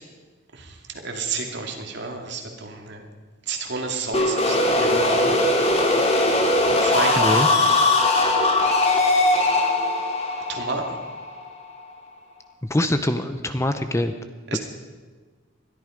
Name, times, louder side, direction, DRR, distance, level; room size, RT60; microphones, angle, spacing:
voice 1, 1.0-3.0 3.5-5.5 6.8-7.9 10.5-11.0 14.5-14.6, right 4 dB, 60° right, 2 dB, 2.5 m, -30 dB
sound 1, 4.1-11.8, left 2 dB, 30° left, 2.1 m, -20 dB
voice 2, 7.2-7.5 12.7-14.1 14.5-14.6, left 1 dB, 15° left, 9 dB, 0.7 m, -23 dB
21.5 x 13.0 x 5.2 m, 1.4 s
head